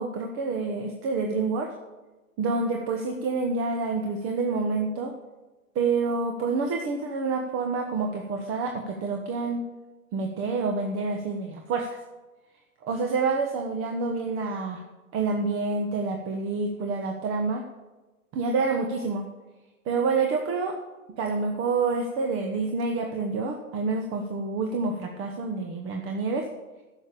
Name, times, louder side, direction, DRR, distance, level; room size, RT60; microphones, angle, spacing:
voice 1, 0.0-1.7 2.4-5.1 5.7-9.6 10.1-12.0 12.8-14.8 15.1-17.6 18.3-19.3 19.8-20.7 21.2-26.4, right 4 dB, 30° right, 3 dB, 1.4 m, -28 dB
11.5 x 7.1 x 8.7 m, 1.2 s
hypercardioid pair, 110°, 42 cm